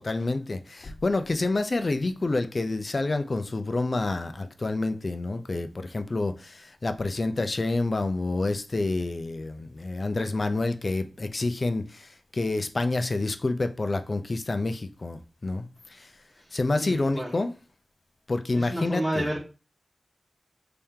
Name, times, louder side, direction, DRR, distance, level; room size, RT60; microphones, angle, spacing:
voice 1, 0.0-16.1 16.5-17.5 18.3-19.3, left 2 dB, 50° left, 0.4 m, -28 dB
voice 2, 16.8-17.4 18.6-19.4, right 1 dB, 25° right, 1.1 m, -30 dB
3.4 x 2.8 x 3.6 m
cardioid pair, 50°, 0 cm